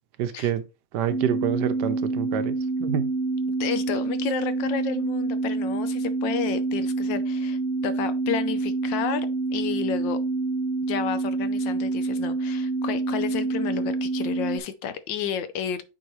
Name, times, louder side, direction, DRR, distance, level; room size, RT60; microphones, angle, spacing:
voice 1, 0.2-0.6 0.9-3.1, right 9 dB, 70° right, 1.2 m, -27 dB
sound 1, 1.1-14.6, right 3 dB, 15° left, 0.5 m, -27 dB
voice 2, 3.6-10.2 10.9-15.8, left 8 dB, 75° left, 1.4 m, -31 dB
8.6 x 4.7 x 3.1 m
omnidirectional pair, 2.0 m